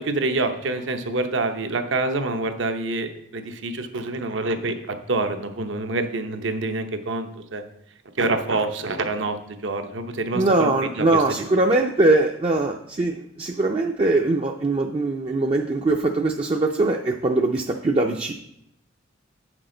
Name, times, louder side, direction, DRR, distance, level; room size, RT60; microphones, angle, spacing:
voice 1, 0.0-7.6 8.2-10.7 11.0-11.2, right 2 dB, 75° right, 7 dB, 0.8 m, -26 dB
voice 2, 10.3-18.3, right 2 dB, 30° right, 2 dB, 0.4 m, -21 dB
8.6 x 6.1 x 3.8 m, 0.76 s
head